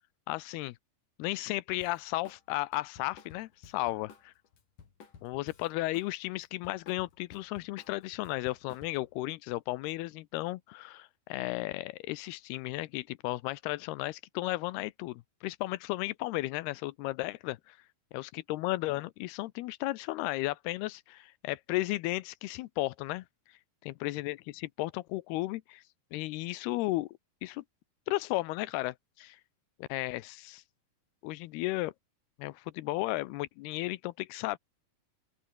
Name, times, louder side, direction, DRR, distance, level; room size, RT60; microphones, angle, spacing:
voice 1, 0.3-0.8 1.2-4.3 5.2-17.8 18.1-23.2 23.9-25.8 26.1-27.1 27.4-27.6 28.1-29.4 29.8-30.6 31.2-31.9 32.4-34.6, left 19 dB, 90° left, 2.8 m, -34 dB
Drum kit, 1.8-2.4 2.7-6.1 6.4-9.2, left 6 dB, 55° left, 5.0 m, -55 dB
open air
omnidirectional pair, 4.5 m